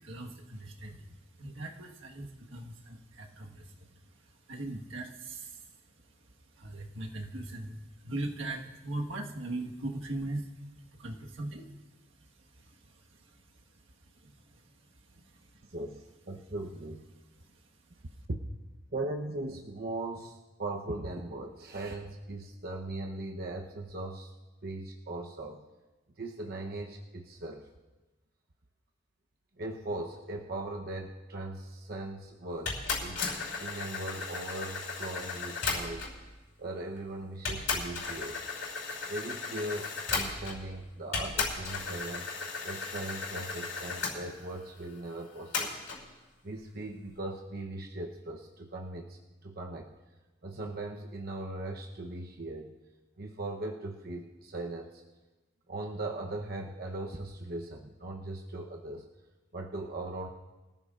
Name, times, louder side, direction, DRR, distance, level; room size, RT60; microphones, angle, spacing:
voice 1, 0.0-15.7 17.4-18.2, right 2 dB, 80° right, 1 dB, 1.5 m, -41 dB
voice 2, 15.7-17.1 18.3-18.4 18.9-24.3 24.6-25.7 26.2-27.7 29.6-33.2 33.6-36.1 36.6-38.4 39.1-42.3 42.6-45.8 46.4-49.9 50.4-52.7 53.2-55.0 55.7-59.1 59.5-60.3, right 2 dB, 50° right, 1 dB, 0.9 m, -39 dB
sound 1, 32.6-36.2 37.0-37.1 37.4-40.7 41.1-44.1 45.5-46.0, left 4 dB, 75° left, 5.2 m, -35 dB
25.0 x 14.5 x 2.5 m, 1.1 s
head